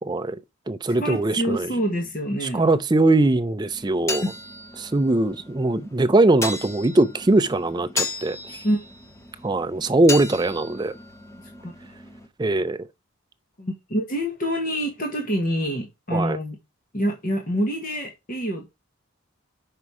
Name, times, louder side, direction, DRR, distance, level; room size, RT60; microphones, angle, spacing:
voice 1, 0.0-0.4 0.7-1.7 2.4-4.2 4.8-8.6 9.4-10.9 12.4-12.8 16.1-16.4, right 2 dB, 20° right, 0.4 m, -21 dB
voice 2, 1.0-2.6 8.6-8.8 11.6-11.7 13.6-16.6 16.9-18.7, equal, 40° left, 1.1 m, -26 dB
sound 1, 3.7-12.3, left 3 dB, 15° left, 0.7 m, -35 dB
6.0 x 5.5 x 4.7 m
head